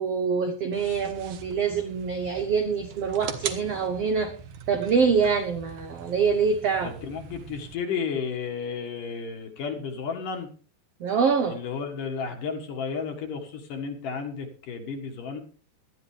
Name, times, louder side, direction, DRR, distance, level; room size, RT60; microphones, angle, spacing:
voice 1, 0.0-4.3 4.7-6.9 11.0-11.6, right 5 dB, 85° right, 7 dB, 1.3 m, -25 dB
sound 1, 0.7-7.7, right 7 dB, 65° right, 2.1 m, -41 dB
voice 2, 6.8-10.5 11.5-15.4, left 5 dB, 60° left, 3 dB, 3.2 m, -33 dB
18.5 x 12.5 x 3.4 m, 0.39 s
omnidirectional pair, 4.5 m